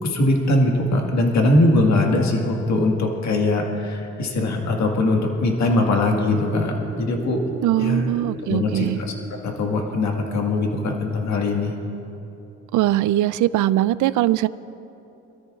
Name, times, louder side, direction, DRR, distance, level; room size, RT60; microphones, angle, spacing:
voice 1, 0.0-7.4 7.8-8.1 8.5-9.1 9.4-11.8, left 2 dB, 65° left, 1 dB, 1.8 m, -21 dB
sound 1, 6.3-11.7, right 1 dB, 40° right, 2.6 m, -38 dB
voice 2, 7.6-9.0 12.7-14.5, right 14 dB, 80° right, 17 dB, 0.5 m, -21 dB
26.5 x 13.5 x 2.4 m, 2.8 s
cardioid pair, 90°, 30 cm